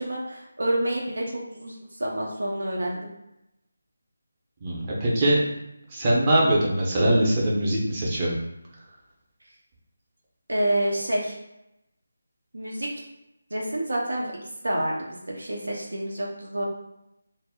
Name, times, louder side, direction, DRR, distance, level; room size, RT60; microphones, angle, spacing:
voice 1, 0.0-3.1 10.5-11.4 12.5-12.9 13.5-14.3 14.6-16.6, right 1 dB, 85° right, -2 dB, 0.6 m, -28 dB
voice 2, 4.6-5.4 5.9-8.3, right 1 dB, 25° right, -4 dB, 0.6 m, -22 dB
2.1 x 2.0 x 3.5 m, 0.86 s
figure-of-eight pair, 165°, 0 cm